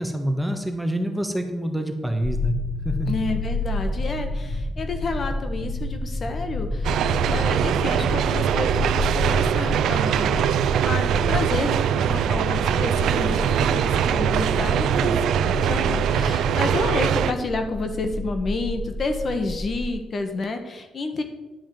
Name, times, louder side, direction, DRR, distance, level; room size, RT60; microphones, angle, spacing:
voice 1, 0.0-2.5 2.8-3.1, right 1 dB, 5° right, 5 dB, 1.4 m, -26 dB
sound 1, 2.2-19.9, left 2 dB, 15° left, 0.7 m, -30 dB
voice 2, 3.1-7.0 7.3-10.4 10.8-21.2, left 3 dB, 45° left, 6 dB, 1.3 m, -30 dB
sound 2, 6.8-17.3, right 9 dB, 80° right, 0.5 m, -22 dB
11.0 x 5.0 x 7.6 m, 1.1 s
cardioid pair, 90°, 0 cm